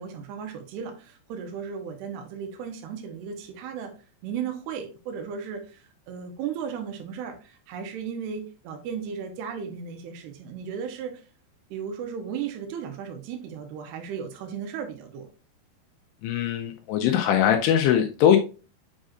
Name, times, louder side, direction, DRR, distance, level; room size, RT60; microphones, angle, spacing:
voice 1, 0.0-3.9 4.2-11.2 11.7-15.3, right 7 dB, 75° right, 2.8 m, -35 dB
voice 2, 16.2-18.4, left 9 dB, 85° left, 2.6 m, -21 dB
7.2 x 5.3 x 2.5 m
omnidirectional pair, 5.0 m